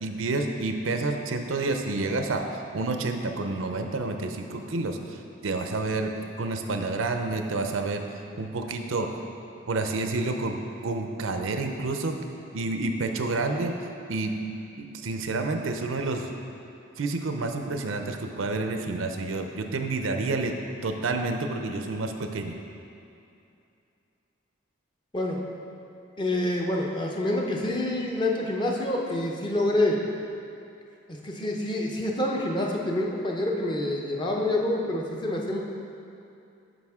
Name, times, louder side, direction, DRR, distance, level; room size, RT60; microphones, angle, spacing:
voice 1, 0.0-2.4 2.7-6.1 6.4-8.0 8.4-9.1 9.7-10.6 10.8-12.1 12.5-13.7 14.1-14.4 14.8-16.4 17.0-20.5 20.8-22.6, right 3 dB, 85° right, 5 dB, 0.6 m, -29 dB
voice 2, 26.2-30.0 31.1-35.6, left 1 dB, 25° left, -1 dB, 0.6 m, -27 dB
9.1 x 6.1 x 3.6 m, 2.7 s
head